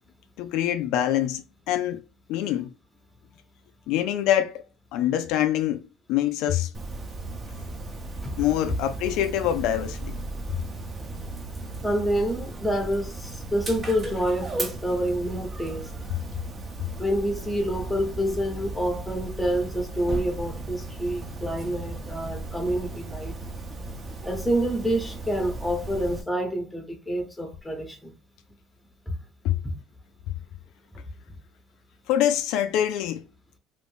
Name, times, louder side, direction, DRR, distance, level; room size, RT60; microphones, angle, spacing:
voice 1, 0.4-2.0 2.3-2.7 3.9-4.6 4.9-5.8 6.1-6.7 8.4-10.2 29.4-29.6 32.1-33.2, left 11 dB, 75° left, 0.3 m, -25 dB
Dog, 6.7-26.2, right 2 dB, 30° right, 0.7 m, -36 dB
voice 2, 11.8-15.9 17.0-23.4 24.2-28.1 29.1-29.2 29.6-29.7, equal, 5° left, 0.9 m, -27 dB
2.6 x 2.5 x 3.5 m
cardioid pair, 120°, 0 cm